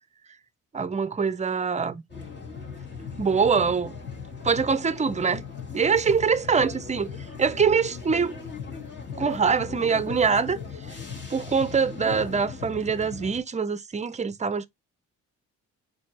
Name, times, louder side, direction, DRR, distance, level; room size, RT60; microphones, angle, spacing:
voice 1, 0.7-2.0 3.2-3.9 4.4-5.5 5.7-7.1 7.4-8.4 9.2-10.6 11.3-14.7, right 5 dB, 25° right, 0.6 m, -24 dB
sound 1, 2.1-13.4, left 5 dB, 35° left, 2.0 m, -38 dB
4.3 x 2.8 x 4.1 m
cardioid pair, 90°, 30 cm